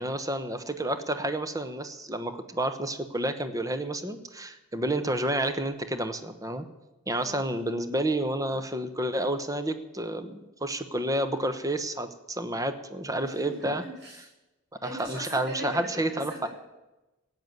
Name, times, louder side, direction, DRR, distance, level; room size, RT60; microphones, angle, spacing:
voice 1, 0.0-6.7 7.1-13.8 15.0-16.5, right 1 dB, 15° right, 9 dB, 1.0 m, -30 dB
voice 2, 7.1-7.4 13.2-14.3 14.8-16.5, equal, 55° right, -2 dB, 6.4 m, -40 dB
16.0 x 8.2 x 9.1 m, 1.0 s
head